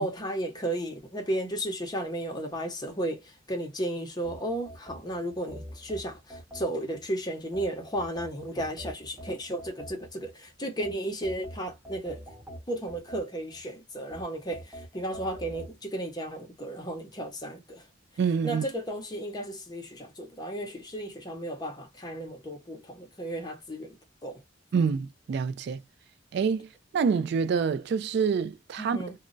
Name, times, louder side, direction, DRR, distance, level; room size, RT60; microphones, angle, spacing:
voice 1, 0.0-12.2 12.7-17.8 18.4-24.0 24.2-24.4 28.8-29.1, right 1 dB, 20° left, 0.8 m, -34 dB
sound 1, 4.2-7.0 7.5-10.3 10.8-13.6 14.1-15.7, equal, 10° right, 1.0 m, -45 dB
voice 2, 18.2-18.6 24.7-25.8 26.3-29.0, right 6 dB, 60° right, 0.3 m, -27 dB
2.2 x 2.0 x 3.8 m
head